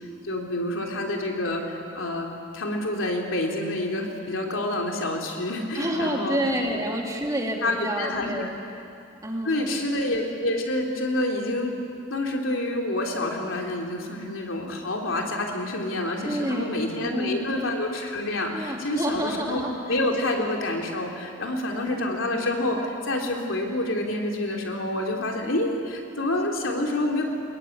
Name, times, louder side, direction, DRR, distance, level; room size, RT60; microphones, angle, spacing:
voice 1, 0.2-2.3 2.5-6.4 7.6-8.5 9.4-11.7 12.1-19.6 19.9-27.2, left 1 dB, 80° left, 1 dB, 3.2 m, -28 dB
voice 2, 5.7-8.6 9.1-9.9 16.2-17.7 18.5-20.0 21.7-22.2 22.6-22.8, equal, 15° right, 0 dB, 2.5 m, -30 dB
22.0 x 21.0 x 9.4 m, 2.5 s
head